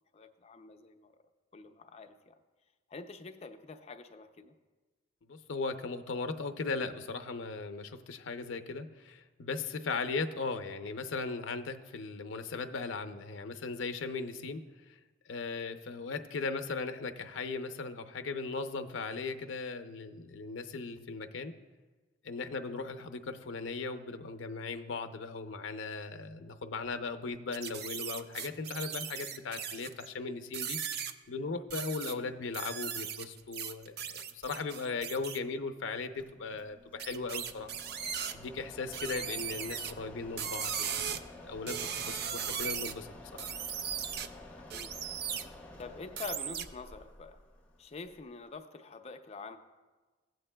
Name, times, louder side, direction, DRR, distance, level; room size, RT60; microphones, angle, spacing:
voice 1, 0.1-1.2 1.5-2.4 2.9-4.5 32.0-32.3 44.7-44.9 45.8-47.4 47.8-49.6, left 4 dB, 35° left, 6 dB, 0.5 m, -46 dB
voice 2, 5.2-14.6 15.3-21.5 22.2-30.8 31.3-37.7 38.0-41.1 41.3-43.1 43.4-43.5, left 4 dB, 85° left, 8 dB, 0.6 m, -38 dB
sound 1, 27.5-30.1 30.5-31.1 31.7-32.1 32.5-35.4 37.0-38.3 38.9-39.9 40.4-41.2 41.7-42.9 43.4-44.3 44.7-45.4 46.2-46.6, right 8 dB, 55° right, 0.4 m, -37 dB
Mechanisms, 36.2-48.6, left 2 dB, 10° left, 0.9 m, -51 dB
15.5 x 7.8 x 2.2 m, 1.3 s
head